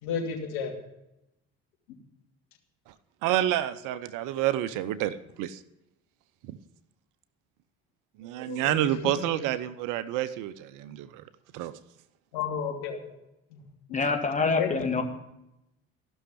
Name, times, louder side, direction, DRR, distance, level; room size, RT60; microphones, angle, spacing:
voice 1, 0.0-0.7 8.5-9.4 12.3-13.2 13.5-14.0 14.4-15.0, left 6 dB, 75° left, 1 dB, 2.7 m, -33 dB
voice 2, 3.2-5.6 6.5-6.6 8.2-11.2 11.5-11.7, right 13 dB, 65° right, 15 dB, 0.8 m, -29 dB
voice 3, 13.9-15.0, left 4 dB, 20° left, 4 dB, 2.3 m, -26 dB
14.5 x 6.4 x 9.9 m, 0.88 s
hypercardioid pair, 60°, 33 cm